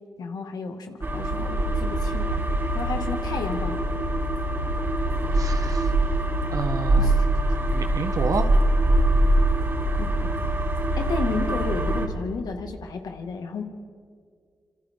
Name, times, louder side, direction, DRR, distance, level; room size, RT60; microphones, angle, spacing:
voice 1, 0.2-2.4 2.7-3.8 7.0-7.3 10.0-10.3 11.0-13.6, left 4 dB, 85° left, 4 dB, 2.1 m, -32 dB
sound 1, 1.0-12.1, right 1 dB, 40° right, 3.8 m, -23 dB
voice 2, 5.3-5.9 6.5-7.1 7.7-8.5, right 5 dB, 65° right, 7 dB, 1.2 m, -30 dB
27.0 x 26.5 x 3.8 m, 2.1 s
cardioid pair, 70°, 7 cm